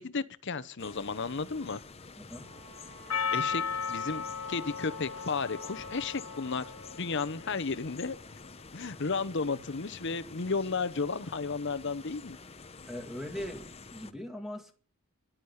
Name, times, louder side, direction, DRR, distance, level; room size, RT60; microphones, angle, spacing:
voice 1, 0.0-1.8 3.3-6.7 7.0-8.2 8.7-12.4, left 4 dB, 55° left, 0.8 m, -33 dB
sound 1, 0.8-14.1, left 4 dB, 25° left, 0.7 m, -49 dB
voice 2, 2.2-2.5 12.9-14.7, left 1 dB, ahead, 2.2 m, -40 dB
sound 2, 2.3-7.0, equal, 60° right, 3.5 m, -51 dB
Percussion, 3.1-7.4, left 6 dB, 85° left, 1.1 m, -36 dB
11.5 x 10.5 x 8.1 m
head